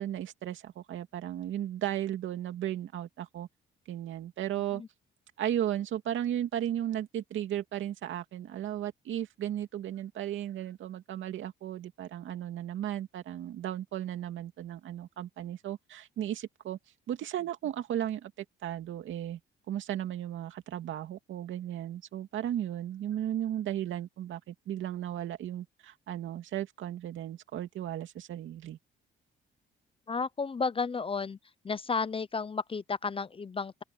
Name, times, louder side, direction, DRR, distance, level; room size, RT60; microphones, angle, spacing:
voice 1, 0.0-3.5 3.9-4.8 5.4-16.8 17.1-19.4 19.7-28.8, right 11 dB, 75° right, 2.5 m, -35 dB
voice 2, 30.1-31.4 31.6-33.8, left 5 dB, 25° left, 0.7 m, -32 dB
open air
cardioid pair, 90°, 20 cm